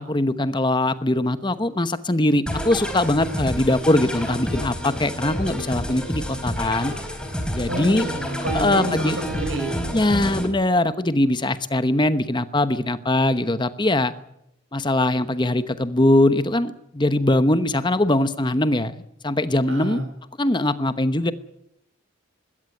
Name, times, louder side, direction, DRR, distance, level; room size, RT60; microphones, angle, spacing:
voice 1, 0.0-6.9 7.5-8.0 8.5-9.2 9.9-14.1 14.7-18.9 19.2-20.0 20.4-21.3, left 1 dB, 20° left, 12 dB, 1.0 m, -21 dB
sound 1, 2.5-10.5, equal, 5° left, 3.9 m, -29 dB
voice 2, 7.7-9.7 19.7-20.1, right 2 dB, 75° right, 6 dB, 7.1 m, -28 dB
21.5 x 16.5 x 9.7 m, 0.79 s
head